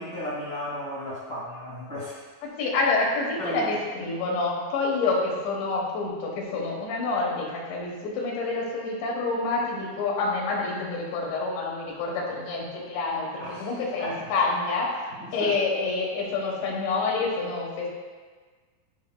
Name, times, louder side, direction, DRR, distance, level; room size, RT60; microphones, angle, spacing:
voice 1, 0.0-2.2 3.4-3.6 13.4-13.7 14.0-14.2 15.2-15.6, equal, 45° left, -6 dB, 1.2 m, -34 dB
voice 2, 2.4-15.0 15.3-17.9, left 3 dB, 85° left, -3 dB, 3.6 m, -27 dB
14.0 x 5.3 x 2.3 m, 1.5 s
omnidirectional pair, 4.9 m